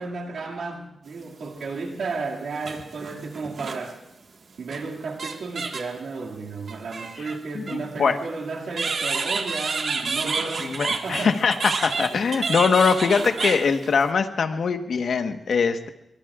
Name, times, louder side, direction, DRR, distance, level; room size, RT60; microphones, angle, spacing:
voice 1, 0.0-4.0 4.6-11.4, right 4 dB, 85° right, -2 dB, 2.3 m, -33 dB
sound 1, 1.4-1.5 2.5-3.9 4.7-4.8 5.2-6.0 6.7-7.8 8.7-14.1, right 4 dB, 60° right, 1.7 m, -29 dB
voice 2, 7.5-8.2 10.6-15.9, left 5 dB, 70° left, 6 dB, 1.3 m, -22 dB
24.0 x 23.5 x 2.5 m, 0.87 s
wide cardioid pair, 95°, 0 cm